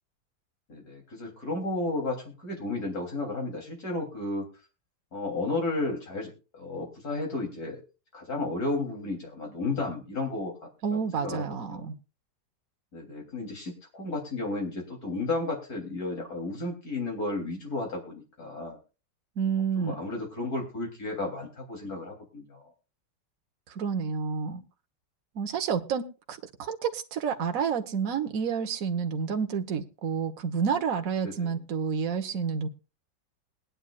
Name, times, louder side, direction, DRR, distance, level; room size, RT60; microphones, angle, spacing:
voice 1, 0.7-4.5 5.1-7.8 8.1-11.9 12.9-18.8 19.8-22.7 31.2-31.5, left 2 dB, 50° left, 1 dB, 3.7 m, -33 dB
voice 2, 10.8-12.0 19.4-19.9 23.7-24.6 25.3-32.7, right 6 dB, 50° right, 5 dB, 1.4 m, -29 dB
21.5 x 9.9 x 2.4 m, 0.33 s
omnidirectional pair, 2.0 m